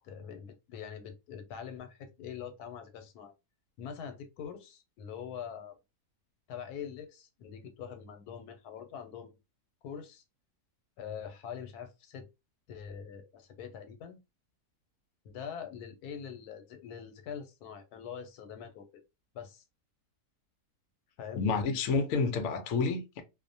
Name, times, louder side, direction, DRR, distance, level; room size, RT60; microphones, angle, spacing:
voice 1, 0.0-3.3 3.8-5.8 6.5-9.4 9.8-10.2 11.0-12.3 12.7-14.2 15.2-18.9 19.3-19.6 21.2-21.5, left 7 dB, 90° left, 1.1 m, -44 dB
voice 2, 21.3-23.2, left 4 dB, 70° left, 0.8 m, -29 dB
2.5 x 2.1 x 2.6 m
omnidirectional pair, 1.6 m